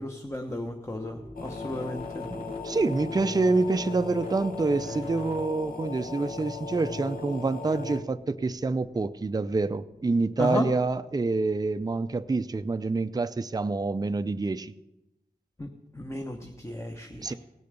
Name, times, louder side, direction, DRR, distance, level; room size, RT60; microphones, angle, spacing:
voice 1, 0.0-2.3 4.9-5.0 10.4-10.7 15.6-17.3, left 1 dB, 15° left, 3 dB, 1.0 m, -34 dB
sound 1, 1.0-12.7, left 1 dB, 40° left, 2.8 m, -50 dB
sound 2, 1.4-8.0, left 4 dB, 60° left, 1.2 m, -37 dB
voice 2, 2.4-14.7 17.2-17.3, right 3 dB, 25° right, 10 dB, 0.5 m, -27 dB
17.0 x 6.7 x 6.8 m, 0.93 s
wide cardioid pair, 80°, 16 cm